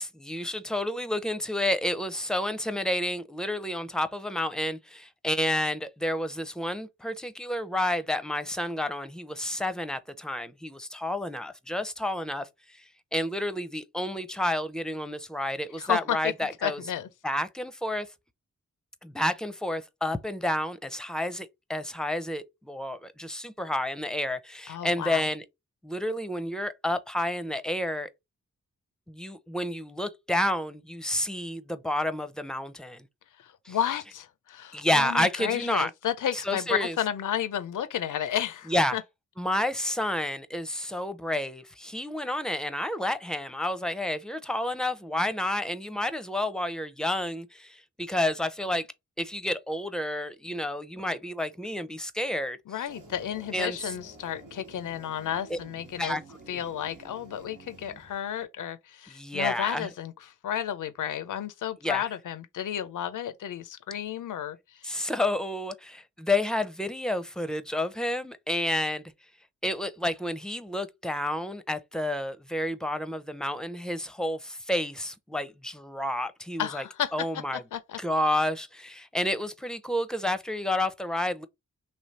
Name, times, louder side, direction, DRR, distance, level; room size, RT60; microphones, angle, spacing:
voice 1, 0.0-12.8 13.1-16.8 17.2-18.1 19.0-25.4 25.8-28.1 29.1-33.1 33.6-33.8 34.7-35.9 36.3-36.9 38.7-39.0 39.4-48.9 49.2-52.6 53.5-53.9 55.5-55.6 56.0-56.2 56.5-56.6 59.1-59.9 61.8-62.1 64.8-69.0 69.6-76.9 77.1-77.6 78.0-81.5, left 1 dB, ahead, 0.5 m, -30 dB
voice 2, 15.8-17.1 24.7-25.3 33.4-39.0 52.7-56.2 56.5-60.1 60.4-64.9 76.6-77.1 77.7-78.0, left 10 dB, 80° left, 0.5 m, -32 dB
sound 1, 52.9-58.4, right 2 dB, 90° right, 1.1 m, -50 dB
3.2 x 3.1 x 4.0 m
wide cardioid pair, 70°, 31 cm